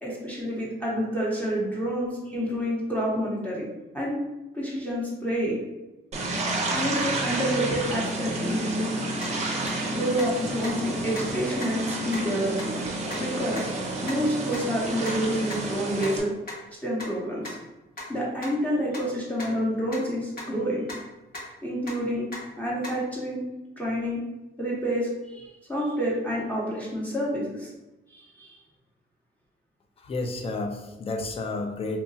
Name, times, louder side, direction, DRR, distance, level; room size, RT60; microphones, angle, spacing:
voice 1, 0.0-3.7 3.9-4.2 4.5-5.6 6.7-8.9 9.9-12.8 13.2-13.7 14.0-16.3 16.8-17.6 18.1-20.9 21.6-22.3 22.6-23.4 23.8-24.2 24.6-27.7 28.1-28.5, equal, 5° left, -6 dB, 0.8 m, -28 dB
sound 1, 6.1-16.2, right 2 dB, 35° right, 0.6 m, -30 dB
sound 2, 9.2-9.3 9.7-9.8 10.2-10.3 10.6-10.8 11.1-11.2 11.6-11.7 12.1-12.2 12.6-12.7 13.1-13.2 13.5-13.6 14.0-14.1 14.5-14.6 15.0-15.1 15.5-15.6 16.0-16.1 16.5-16.6 17.0-17.1 17.4-17.5 18.0-18.1 18.4-18.5 18.9-19.0 19.4-19.5 19.9-20.0 20.4-20.5 20.9-21.0 21.3-21.4 21.9-22.0 22.3-22.4 22.8-22.9, left 1 dB, 45° left, 1.0 m, -36 dB
voice 2, 30.0-32.0, left 2 dB, 30° left, 4 dB, 0.4 m, -31 dB
2.8 x 2.2 x 2.7 m, 1.0 s
cardioid pair, 90°, 20 cm